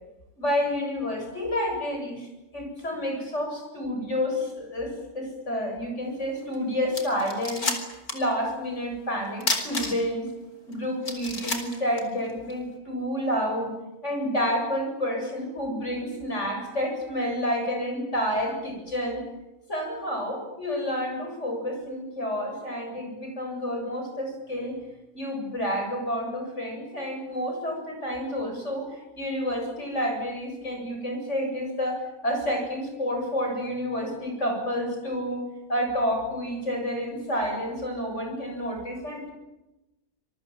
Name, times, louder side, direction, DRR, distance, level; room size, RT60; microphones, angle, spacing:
voice 1, 0.4-2.3 2.5-7.7 8.1-10.3 10.7-13.7 14.0-19.2 19.7-24.8 25.1-35.4 35.7-39.3, equal, 50° left, 3 dB, 8.4 m, -29 dB
sound 1, 6.5-6.6 6.9-8.3 8.6-8.7 9.4-10.3 10.7-10.8 11.0-12.6, left 2 dB, 80° left, 4.6 m, -30 dB
26.0 x 23.0 x 8.9 m, 0.98 s
omnidirectional pair, 1.5 m